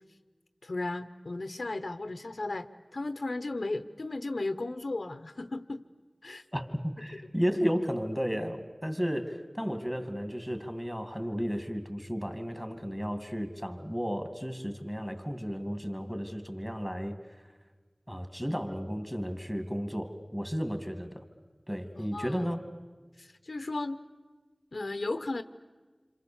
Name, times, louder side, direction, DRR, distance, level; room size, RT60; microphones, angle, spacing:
voice 1, 0.6-5.9 6.2-6.4 21.9-22.5 23.2-24.0 24.7-25.4, left 2 dB, 80° left, 10 dB, 0.9 m, -35 dB
voice 2, 6.5-17.2 18.1-21.2 21.7-22.6, equal, 5° right, 7 dB, 2.6 m, -33 dB
27.0 x 27.0 x 7.2 m, 1.3 s
wide cardioid pair, 45°, 0 cm